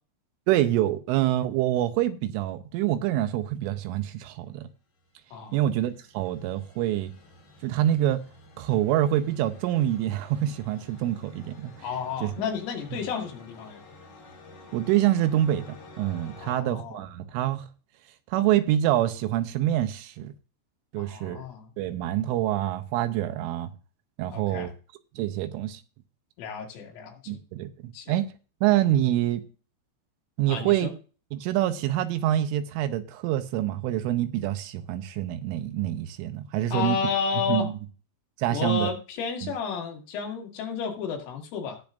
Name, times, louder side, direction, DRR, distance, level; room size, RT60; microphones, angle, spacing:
voice 1, 0.5-4.7 5.5-7.1 7.6-8.2 8.6-11.7 12.2-12.3 14.7-17.7 18.3-20.3 20.9-21.4 21.8-23.7 24.2-24.7 25.2-25.8 27.3-28.3 28.6-29.4 30.4-30.9 31.3-37.0 37.4-37.7 38.4-38.9 39.4-39.5, right 13 dB, 85° right, 3.2 m, -26 dB
sound 1, 5.0-16.5, left 2 dB, 35° left, 3.0 m, -50 dB
voice 2, 11.8-13.8 16.4-17.0 21.0-21.7 24.3-24.7 26.4-27.4 27.9-28.1 30.5-30.9 36.7-37.7 38.5-41.8, left 6 dB, 80° left, 4.6 m, -32 dB
18.0 x 6.9 x 2.6 m
omnidirectional pair, 5.7 m